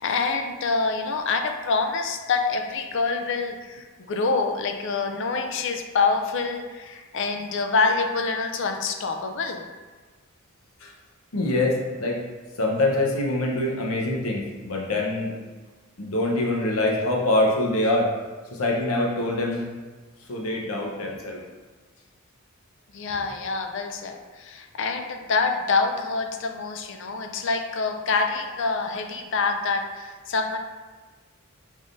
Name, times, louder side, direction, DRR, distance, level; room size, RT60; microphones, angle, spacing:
voice 1, 0.0-9.6 22.9-30.6, left 4 dB, 60° left, 5 dB, 0.5 m, -26 dB
voice 2, 11.3-12.2 12.6-15.3 16.0-18.1 18.5-19.6 20.3-21.4, left 2 dB, 75° left, -1 dB, 0.8 m, -24 dB
5.3 x 3.6 x 2.6 m, 1.3 s
head